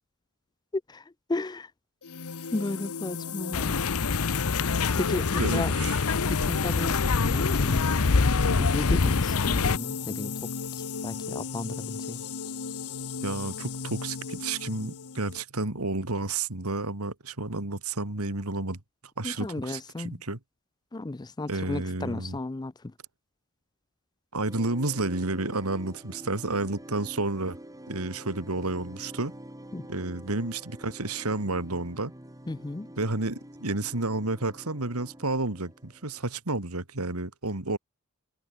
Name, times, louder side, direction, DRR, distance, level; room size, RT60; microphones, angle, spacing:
voice 1, 0.9-1.7 2.5-3.8 5.0-5.7 6.3-7.8 8.6-10.5 10.8-12.2 19.2-20.2 20.9-22.9 29.7-29.9 32.5-32.9, left 2 dB, 20° left, 0.5 m, -34 dB
sound 1, 2.0-15.4, left 5 dB, 90° left, 1.1 m, -35 dB
sound 2, 3.5-9.8, left 4 dB, 70° left, 0.8 m, -25 dB
voice 2, 5.4-6.0 13.2-18.8 19.2-20.4 21.5-22.4 24.3-27.6 27.9-29.3 29.9-32.1 33.0-37.8, right 2 dB, 80° right, 2.7 m, -31 dB
sound 3, 24.4-36.3, right 1 dB, 15° right, 2.9 m, -46 dB
head